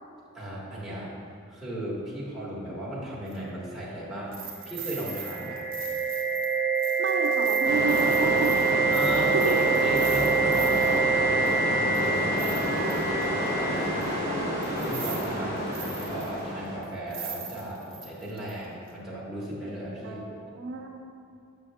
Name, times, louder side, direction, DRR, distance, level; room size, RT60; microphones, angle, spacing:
voice 1, 0.3-1.1 1.5-4.4 4.6-5.6 8.9-13.9 14.6-20.2, right 1 dB, ahead, -8 dB, 1.6 m, -36 dB
sound 1, 3.3-3.4 4.3-11.0 11.5-11.6 11.9-13.2 14.0-14.1 14.6-15.3 15.6-16.4 16.8-16.9 17.1-18.5 18.9-19.0, right 6 dB, 45° right, 1.2 m, -40 dB
sound 2, 4.8-14.7, right 4 dB, 20° left, 1.0 m, -26 dB
voice 2, 7.0-8.7 9.2-9.6 20.0-20.9, right 3 dB, 60° right, 1 dB, 0.5 m, -31 dB
sound 3, 7.6-16.8, equal, 45° left, 1.5 m, -29 dB
7.4 x 6.1 x 3.5 m, 2.5 s
head